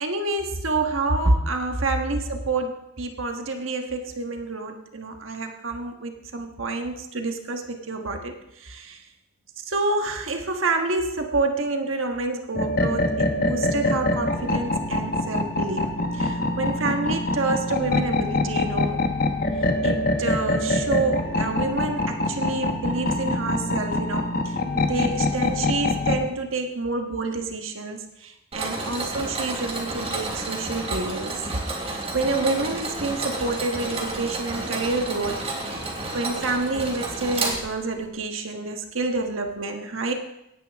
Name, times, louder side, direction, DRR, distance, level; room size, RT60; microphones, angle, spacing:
voice 1, 0.0-9.0 9.7-19.1 19.8-31.4 31.8-35.5 36.1-40.1, right 3 dB, 85° right, 4 dB, 1.4 m, -28 dB
sound 1, 12.5-26.3, left 2 dB, 45° left, 1.1 m, -25 dB
Mechanisms, 28.5-38.1, right 2 dB, 30° right, 3.1 m, -31 dB
17.5 x 9.9 x 3.6 m, 0.86 s
head